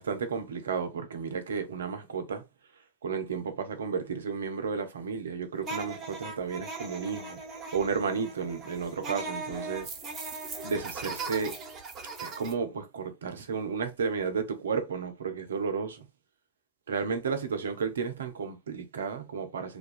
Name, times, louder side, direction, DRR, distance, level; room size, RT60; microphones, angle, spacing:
voice 1, 0.0-2.4 3.0-7.4 7.7-9.9 10.6-11.6 12.2-16.1 16.9-19.8, right 5 dB, 80° right, 0.5 m, -32 dB
sound 1, 5.6-12.5, right 3 dB, 30° right, 1.0 m, -39 dB
2.3 x 2.3 x 2.4 m
hypercardioid pair, 90°, 0 cm